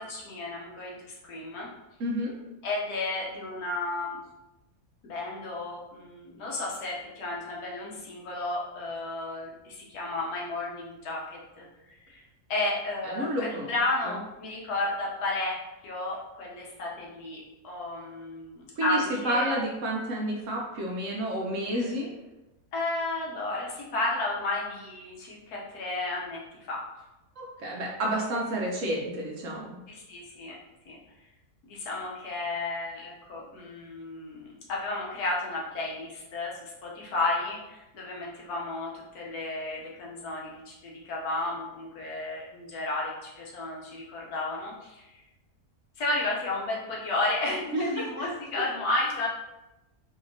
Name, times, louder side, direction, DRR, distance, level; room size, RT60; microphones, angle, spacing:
voice 1, 0.0-1.7 2.6-4.2 5.0-11.7 12.1-12.2 12.5-15.6 15.8-19.5 21.8-21.9 22.7-26.4 26.7-26.8 29.9-30.6 30.9-31.0 31.6-45.1 46.0-49.3, left 2 dB, 80° left, -3 dB, 1.4 m, -32 dB
voice 2, 2.0-2.3 13.1-13.7 14.0-14.2 18.8-22.1 27.4-29.8 47.7-48.0, right 1 dB, 65° right, -2 dB, 0.9 m, -30 dB
4.1 x 2.8 x 2.7 m, 0.99 s
omnidirectional pair, 1.6 m